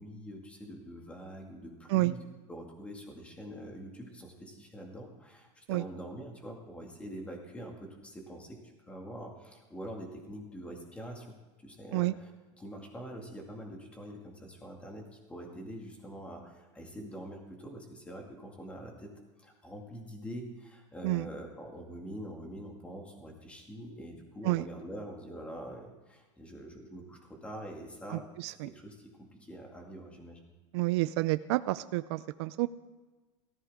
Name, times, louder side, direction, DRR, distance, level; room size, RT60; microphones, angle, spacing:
voice 1, 0.0-2.2 2.5-8.6 8.9-11.3 11.6-12.3 12.6-19.1 19.4-28.3 28.6-30.5, equal, 10° left, 1 dB, 2.2 m, -45 dB
voice 2, 28.1-28.7 30.7-32.7, right 19 dB, 55° right, 13 dB, 0.4 m, -29 dB
17.5 x 14.5 x 3.7 m, 1.3 s
supercardioid pair, 160°, 16 cm